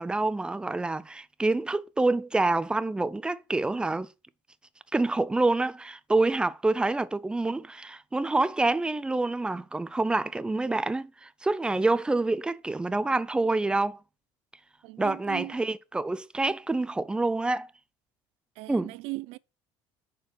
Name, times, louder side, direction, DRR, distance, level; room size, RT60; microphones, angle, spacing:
voice 1, 0.0-4.1 4.9-14.0 15.0-17.7 18.7-18.9, right 2 dB, 10° right, 0.5 m, -27 dB
voice 2, 14.8-15.6 18.6-19.4, right 21 dB, 75° right, 0.4 m, -38 dB
6.8 x 4.8 x 6.6 m
cardioid pair, 130°, 10 cm